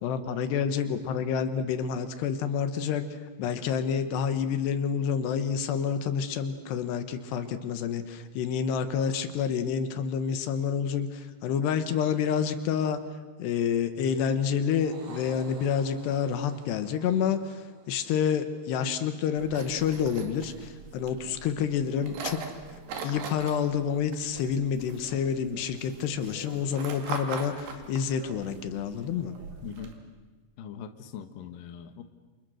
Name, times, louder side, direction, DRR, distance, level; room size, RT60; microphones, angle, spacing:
voice 1, 0.0-13.0 13.4-22.4 23.0-29.4, left 7 dB, 80° left, 10 dB, 3.4 m, -28 dB
sound 1, 14.4-19.0, right 3 dB, 50° right, 4.3 m, -51 dB
sound 2, 19.4-29.9, right 4 dB, 70° right, 4.4 m, -42 dB
voice 2, 29.6-29.9 30.6-32.0, left 8 dB, 65° left, 8 dB, 2.7 m, -41 dB
28.5 x 28.5 x 6.4 m, 1.3 s
omnidirectional pair, 4.8 m